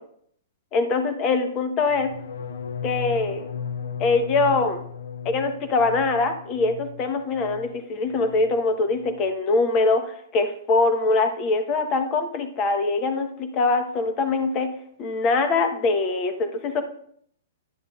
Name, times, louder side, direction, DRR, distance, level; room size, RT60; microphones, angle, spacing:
voice 1, 0.7-2.1 2.8-3.4 4.0-4.8 5.2-14.7 15.0-16.8, left 3 dB, 35° left, 8 dB, 1.0 m, -23 dB
sound 1, 1.9-7.8 8.1-8.6 8.9-9.3, left 7 dB, 75° left, 0.6 m, -36 dB
9.8 x 7.3 x 2.4 m, 0.65 s
hypercardioid pair, 130°, 0 cm